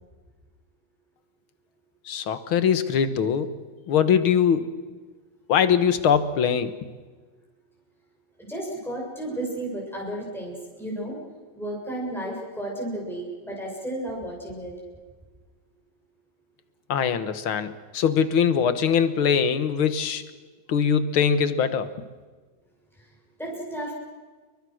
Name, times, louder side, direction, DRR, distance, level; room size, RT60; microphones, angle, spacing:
voice 1, 2.1-3.6 3.9-4.7 5.5-6.7 16.9-20.2 20.7-21.9, left 7 dB, 80° left, 12 dB, 2.2 m, -22 dB
voice 2, 8.4-11.2 11.6-14.8 23.4-23.9, right 1 dB, ahead, -3 dB, 6.9 m, -33 dB
29.0 x 23.0 x 6.4 m, 1.4 s
omnidirectional pair, 2.3 m